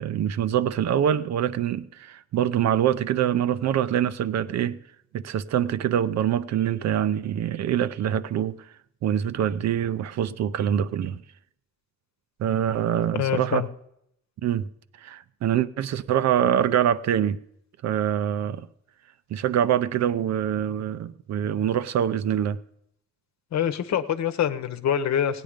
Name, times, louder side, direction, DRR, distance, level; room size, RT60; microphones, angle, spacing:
voice 1, 0.0-4.8 5.1-8.6 9.0-11.2 12.4-13.7 14.4-14.7 15.0-17.4 17.8-18.7 19.3-22.6, right 10 dB, 60° right, 0.6 m, -24 dB
voice 2, 13.1-13.7 23.5-25.4, left 9 dB, 65° left, 1.0 m, -25 dB
17.0 x 9.1 x 5.1 m
cardioid pair, 90°, 30 cm